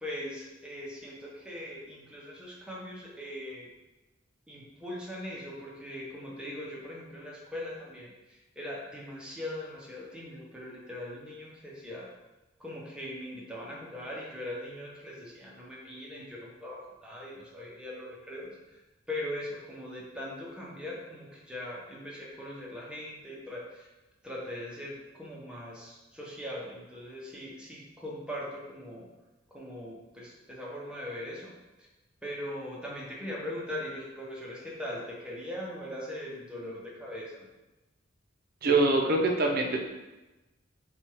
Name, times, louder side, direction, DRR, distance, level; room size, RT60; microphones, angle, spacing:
voice 1, 0.0-3.7 4.5-12.1 12.6-18.8 19.1-23.9 24.2-29.1 29.5-31.5 32.2-37.5, left 1 dB, 5° right, -5 dB, 0.7 m, -40 dB
voice 2, 38.6-39.9, right 2 dB, 50° right, 1 dB, 0.5 m, -24 dB
4.3 x 2.3 x 3.0 m, 1.1 s
head